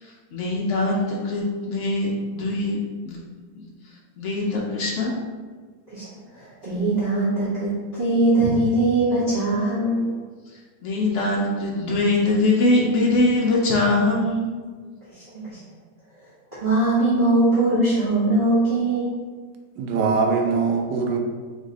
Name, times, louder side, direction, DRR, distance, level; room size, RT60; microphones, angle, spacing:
voice 1, 0.0-3.2 3.6-3.7 4.2-5.2 10.8-14.5, left 2 dB, 80° left, -3 dB, 0.6 m, -22 dB
voice 2, 5.9-10.1 15.1-15.6 16.2-19.1, right 2 dB, 30° right, -13 dB, 1.3 m, -22 dB
voice 3, 19.8-21.2, right 4 dB, 75° right, 3 dB, 1.2 m, -22 dB
3.4 x 3.2 x 3.7 m, 1.5 s
omnidirectional pair, 2.0 m